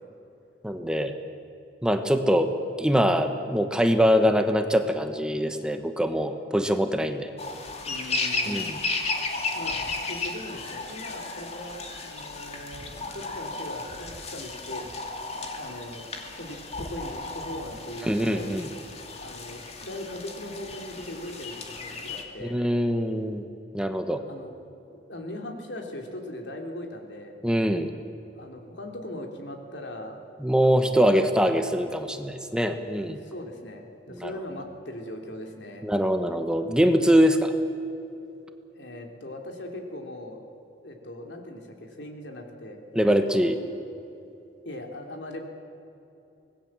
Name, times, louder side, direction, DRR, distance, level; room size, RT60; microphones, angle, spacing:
voice 1, 0.6-1.2 1.8-7.3 8.5-8.8 18.0-18.7 22.4-23.4 23.7-24.2 27.4-27.9 30.4-33.2 34.1-34.3 35.8-37.5 42.9-43.6, equal, 5° right, 7 dB, 1.1 m, -23 dB
sound 1, 7.4-22.2, left 3 dB, 35° left, 2.4 m, -34 dB
voice 2, 7.9-8.7 9.5-9.8 10.1-14.9 15.5-18.6 19.2-22.6 24.3-24.5 24.9-27.4 28.3-30.2 30.6-31.2 33.2-35.9 38.7-40.4 40.8-43.5 44.6-45.4, left 1 dB, 80° left, 3 dB, 3.2 m, -39 dB
25.0 x 19.5 x 7.4 m, 2.8 s
head